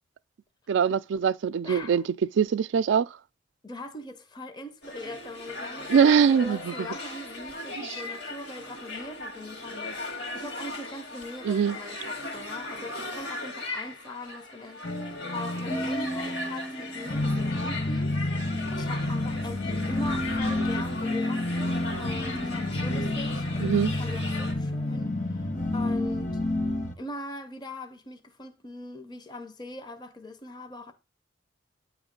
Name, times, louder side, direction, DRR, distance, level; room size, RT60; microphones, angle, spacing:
voice 1, 0.7-2.0 2.4-3.1 5.9-6.7 7.8-7.9 11.4-11.8 23.6-23.9, right 7 dB, 70° right, 0.3 m, -22 dB
voice 2, 1.6-2.1 3.6-14.8 15.3-26.4 27.0-30.9, left 1 dB, 20° left, 0.6 m, -41 dB
sound 1, 4.8-24.5, left 2 dB, 60° left, 1.8 m, -38 dB
sound 2, 14.8-26.9, left 1 dB, 40° left, 1.0 m, -29 dB
8.8 x 3.1 x 5.1 m
head